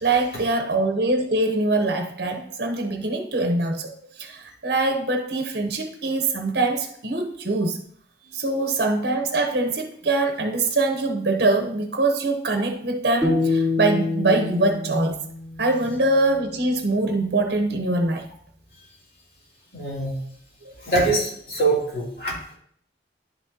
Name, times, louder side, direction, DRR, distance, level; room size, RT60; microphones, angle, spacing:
voice 1, 0.0-3.9 4.2-7.8 8.3-15.2 15.6-18.3 20.7-20.8, right 2 dB, 60° right, 0.9 m, -23 dB
sound 1, 13.2-16.3, left 3 dB, 5° left, 2.5 m, -26 dB
voice 2, 19.7-20.1 20.8-22.3, right 2 dB, 60° left, 2.8 m, -23 dB
10.5 x 6.1 x 2.8 m
head